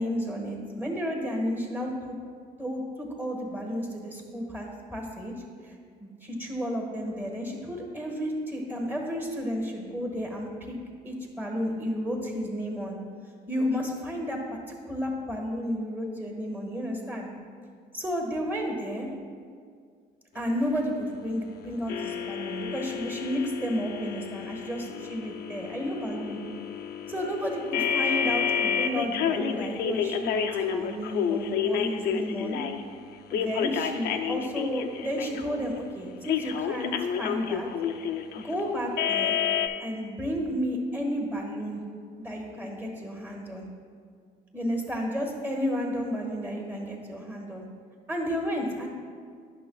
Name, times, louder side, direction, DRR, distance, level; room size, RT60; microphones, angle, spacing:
voice 1, 0.0-2.1 2.6-5.3 5.6-5.7 6.0-10.8 11.0-13.0 13.5-14.6 14.8-17.3 17.9-19.1 20.3-26.4 27.1-32.6 33.3-37.7 38.3-39.4 39.8-41.8 42.2-43.6 44.5-47.6 48.1-48.9, equal, 10° right, 0 dB, 1.4 m, -32 dB
sound 1, 21.9-32.8 33.3-35.7 36.2-39.7, left 7 dB, 70° left, 0.5 m, -30 dB
10.5 x 6.3 x 2.3 m, 2.1 s
cardioid pair, 110°, 17 cm